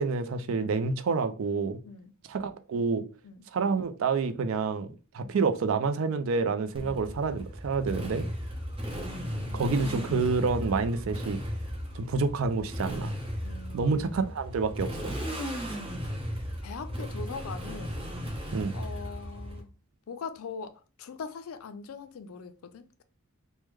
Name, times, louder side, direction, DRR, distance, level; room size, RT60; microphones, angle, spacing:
voice 1, 0.0-1.8 2.3-3.0 3.5-4.9 5.1-8.3 9.5-11.4 11.9-13.1 13.7-15.2 18.5-18.7, right 4 dB, 70° right, 0.4 m, -28 dB
voice 2, 1.8-2.2 3.2-3.5 5.2-5.3 6.8-7.0 8.8-9.9 13.4-14.3 16.6-18.0 18.7-19.7 20.1-23.0, left 5 dB, 80° left, 0.4 m, -42 dB
Motorcycle, 6.7-19.6, equal, 25° right, 0.8 m, -36 dB
3.4 x 2.1 x 3.1 m
head